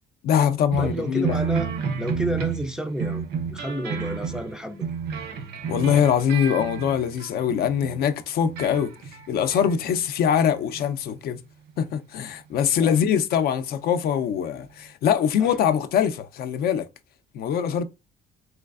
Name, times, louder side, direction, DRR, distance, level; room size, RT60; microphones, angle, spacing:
voice 1, 0.2-1.4 5.7-8.9 9.3-11.4 11.8-16.9 17.3-17.8, left 8 dB, 65° left, 0.4 m, -23 dB
sound 1, 0.7-8.0 8.4-10.0 10.3-10.8 11.7-11.8, right 6 dB, 65° right, 0.6 m, -31 dB
voice 2, 0.8-1.7 2.0-3.2 3.5-4.9 12.8-13.0 15.4-15.5, right 1 dB, 5° right, 0.3 m, -30 dB
3.2 x 3.1 x 2.4 m
cardioid pair, 110°, 17 cm